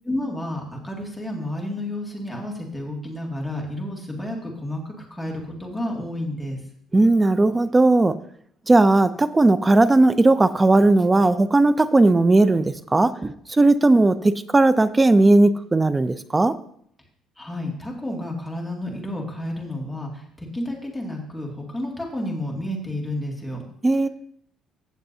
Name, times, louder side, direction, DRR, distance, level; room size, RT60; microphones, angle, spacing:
voice 1, 0.0-6.6 17.4-23.6, left 1 dB, 5° left, -1 dB, 2.1 m, -31 dB
voice 2, 6.9-8.2 8.7-16.6 23.8-24.1, right 2 dB, 15° right, 13 dB, 0.4 m, -17 dB
15.5 x 7.1 x 2.7 m, 0.67 s
cardioid pair, 145°, 0 cm